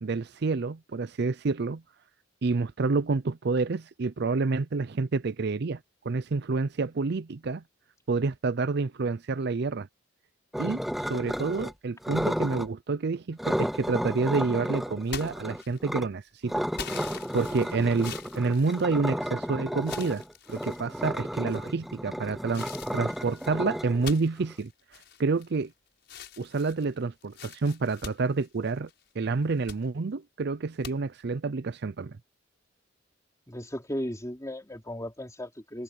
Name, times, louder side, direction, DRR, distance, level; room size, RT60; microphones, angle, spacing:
voice 1, 0.0-1.8 2.4-5.8 6.0-7.6 8.1-9.9 10.6-16.5 17.1-20.2 20.5-22.7 22.9-24.7 25.2-25.7 26.4-28.9 29.2-32.2, right 4 dB, 55° right, 0.5 m, -28 dB
sound 1, 10.5-11.7 12.0-12.7 13.4-16.1 16.5-24.5, equal, ahead, 0.5 m, -33 dB
sound 2, 15.0-16.1 16.8-19.4 19.8-20.8 21.5-21.9 22.5-25.7 26.0-29.0 29.4-29.8 30.8-30.9, left 7 dB, 60° left, 7.4 m, -43 dB
voice 2, 33.5-35.8, equal, 15° left, 3.4 m, -36 dB
head